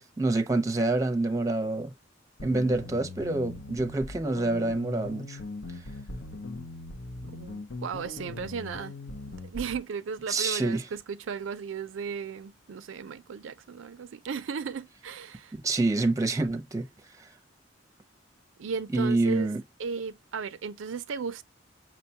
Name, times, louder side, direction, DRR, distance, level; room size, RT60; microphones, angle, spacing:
voice 1, 0.0-1.9 2.4-5.4 10.3-10.8 15.6-16.9 18.9-19.6, right 2 dB, 15° right, 0.6 m, -27 dB
sound 1, 2.4-9.8, left 2 dB, 65° left, 0.7 m, -40 dB
voice 2, 7.3-8.9 9.3-15.5 18.6-19.5 19.8-21.4, right 5 dB, 90° right, 0.4 m, -35 dB
6.0 x 2.2 x 2.7 m
head